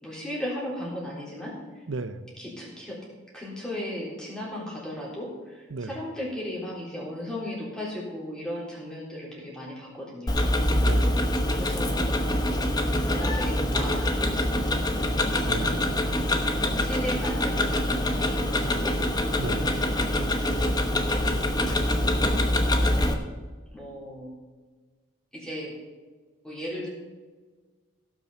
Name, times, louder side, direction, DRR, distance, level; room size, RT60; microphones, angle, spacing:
voice 1, 0.0-1.8 2.4-3.0 3.3-10.6 11.5-12.2 13.1-14.6 15.6-15.8 16.3-19.0 22.9-23.2 23.7-24.3 25.3-25.7 26.4-26.9, left 1 dB, 5° left, -5 dB, 3.7 m, -36 dB
voice 2, 1.9-2.2 5.7-5.9 10.8-11.2 15.4-15.9 19.4-19.7, right 3 dB, 75° right, 10 dB, 0.7 m, -34 dB
Tick-tock, 10.3-23.1, left 1 dB, 20° left, 0.9 m, -25 dB
16.5 x 6.1 x 6.7 m, 1.4 s
head